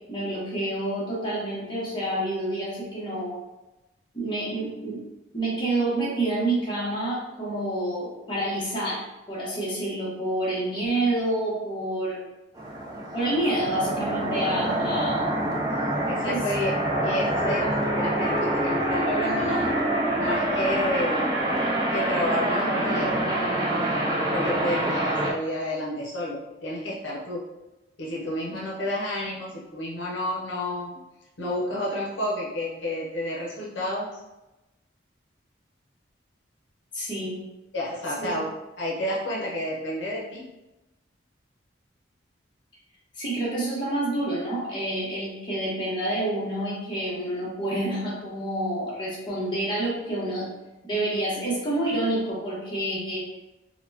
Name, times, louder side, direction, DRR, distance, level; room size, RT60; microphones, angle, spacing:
voice 1, 0.1-3.4 4.1-5.0 5.3-12.2 13.1-15.2 16.2-16.4 28.5-28.6 36.9-37.4 38.2-38.4 43.1-50.5 50.8-53.3, right 1 dB, 25° left, -7 dB, 1.0 m, -28 dB
sound 1, 12.6-25.3, right 1 dB, 20° right, 0.5 m, -26 dB
voice 2, 16.1-19.7 20.2-21.2 21.9-23.1 24.3-27.4 28.0-31.0 31.4-34.2 37.7-38.5 38.8-40.5, left 1 dB, 75° left, -4 dB, 0.7 m, -30 dB
4.0 x 2.2 x 2.7 m, 1.0 s
head